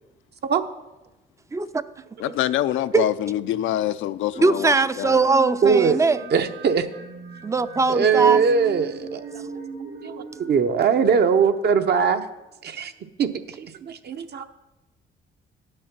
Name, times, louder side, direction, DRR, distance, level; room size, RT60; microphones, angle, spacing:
voice 1, 1.5-1.8 2.2-2.3 2.9-3.0 4.4-6.2 7.4-8.4, right 4 dB, 15° right, 0.4 m, -20 dB
voice 2, 2.2-5.2, left 12 dB, 80° left, 0.4 m, -25 dB
sound 1, 4.3-12.0, right 3 dB, 75° right, 1.4 m, -39 dB
voice 3, 5.6-6.0 6.3-6.9 7.9-9.2 10.0-12.2 12.6-12.9 13.2-13.3 13.6-14.4, right 6 dB, 55° right, 0.8 m, -20 dB
10.0 x 6.5 x 5.9 m
cardioid pair, 90°, 20 cm